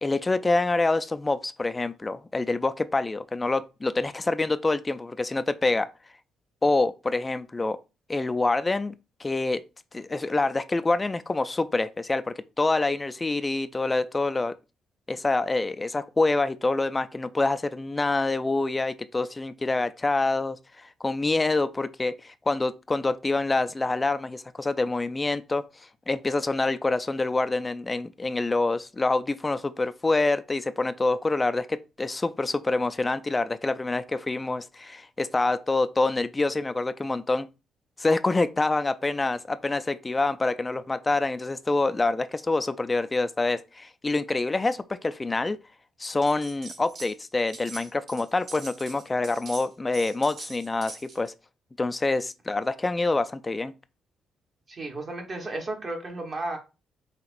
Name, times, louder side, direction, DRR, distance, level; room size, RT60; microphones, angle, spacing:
voice 1, 0.0-5.9 6.6-7.8 8.1-8.9 9.2-9.6 9.9-14.5 15.1-25.6 26.1-37.5 38.0-45.6 46.0-51.3 51.8-53.7, left 3 dB, 20° left, 0.3 m, -26 dB
sound 1, 46.2-47.1 47.4-51.3, right 3 dB, 60° right, 2.1 m, -43 dB
voice 2, 54.7-56.6, right 2 dB, 40° right, 1.1 m, -33 dB
5.8 x 2.9 x 2.5 m
cardioid pair, 90°, 0 cm